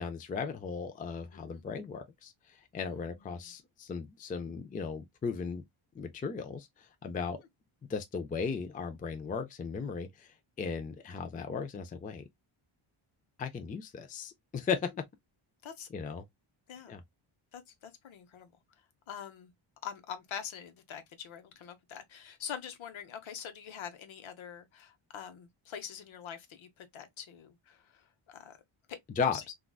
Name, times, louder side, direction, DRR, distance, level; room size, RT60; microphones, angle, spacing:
voice 1, 0.0-5.6 5.9-7.4 7.9-10.3 10.6-12.2 13.4-14.9 15.9-16.2 16.9-17.0 29.2-29.5, left 5 dB, 20° left, 0.3 m, -36 dB
voice 2, 2.7-3.5 15.6-15.9 16.7-17.0 17.5-18.5 19.1-19.5 19.8-28.5 28.9-29.0 29.3-29.4, left 8 dB, 70° left, 0.9 m, -45 dB
3.6 x 2.4 x 2.2 m
wide cardioid pair, 155°, 49 cm